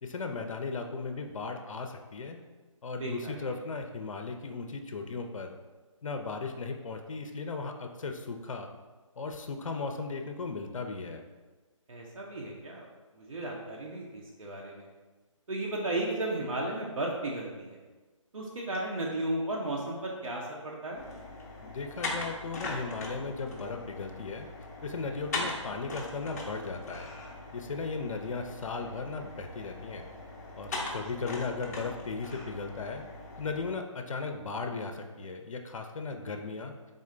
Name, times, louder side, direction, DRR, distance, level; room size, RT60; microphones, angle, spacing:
voice 1, 0.0-2.4 2.8-5.5 6.0-8.7 9.2-11.2 21.6-24.5 24.8-27.1 27.5-30.1 30.6-33.0 33.4-36.7, left 4 dB, 75° left, 5 dB, 0.5 m, -36 dB
voice 2, 3.0-3.6 11.9-12.9 13.2-14.9 15.5-17.8 18.3-21.0, right 1 dB, 80° right, -2 dB, 0.7 m, -34 dB
sound 1, 20.9-33.7, left 2 dB, 30° left, 0.6 m, -40 dB
3.7 x 2.2 x 3.7 m, 1.3 s
figure-of-eight pair, 155°, 17 cm